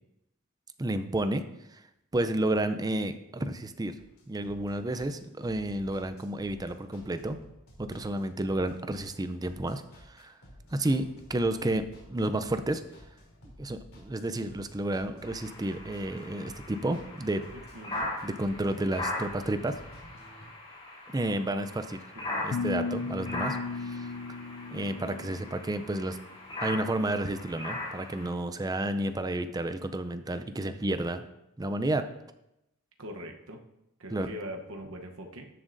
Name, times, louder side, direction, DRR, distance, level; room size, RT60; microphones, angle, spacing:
voice 1, 0.8-1.4 1.7-1.8 2.1-4.0 4.3-7.4 7.8-9.8 10.1-10.3 10.7-12.8 13.6-17.4 18.2-19.8 21.1-22.0 22.4-24.1 24.7-26.2 26.6-31.2 31.6-32.1 34.1-34.3, right 1 dB, 20° right, 10 dB, 0.5 m, -31 dB
sound 1, 4.0-20.4, equal, 85° left, 3.1 m, -52 dB
sound 2, 15.2-28.3, left 2 dB, 25° left, 3.8 m, -40 dB
voice 2, 17.7-18.1 22.1-22.4 33.0-33.6 34.0-35.4, equal, 65° right, 3 dB, 1.0 m, -41 dB
sound 3, 22.5-25.6, left 4 dB, 55° left, 0.4 m, -35 dB
13.5 x 7.4 x 2.6 m, 0.86 s
head